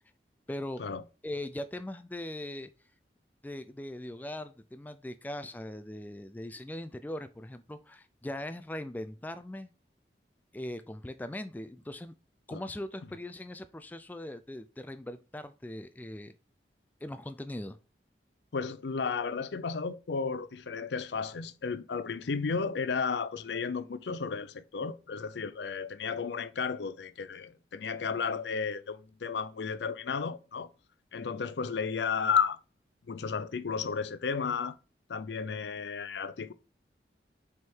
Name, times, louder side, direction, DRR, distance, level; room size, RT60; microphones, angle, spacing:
voice 1, 0.5-0.8 1.2-2.7 3.4-9.7 10.5-12.1 12.5-16.3 17.0-17.8, left 1 dB, 10° left, 0.3 m, -40 dB
voice 2, 18.5-30.7 31.1-32.6 33.1-34.8 35.1-36.5, left 5 dB, 80° left, 0.5 m, -33 dB
6.2 x 3.6 x 4.5 m
head